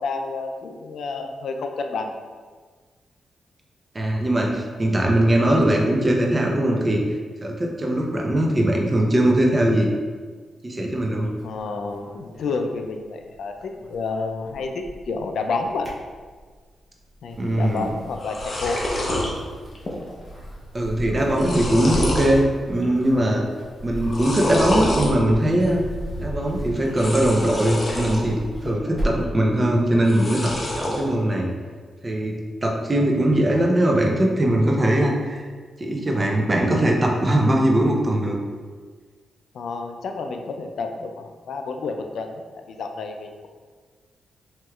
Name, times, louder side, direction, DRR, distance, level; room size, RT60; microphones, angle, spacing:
voice 1, 0.0-2.1 11.4-16.0 17.2-18.8 39.5-43.5, left 4 dB, 75° left, 5 dB, 0.4 m, -30 dB
voice 2, 3.9-7.0 7.4-9.9 10.6-11.3 17.4-17.9 20.7-23.4 23.8-25.8 26.2-31.5 32.0-35.4 35.8-38.4, right 1 dB, 25° right, 0 dB, 0.6 m, -21 dB
sound 1, 11.2-13.4 13.6-15.2 15.6-16.6 17.2-29.4, right 1 dB, 15° left, 1.1 m, -36 dB
sound 2, 17.8-17.9 18.1-19.3 19.7-20.2 20.4-20.5 21.1-22.4 22.8-23.3 24.0-25.1 26.8-28.2 28.6-29.2 30.0-31.0, left 1 dB, 40° left, 0.7 m, -27 dB
4.5 x 3.0 x 2.3 m, 1.5 s
cardioid pair, 95°, 0 cm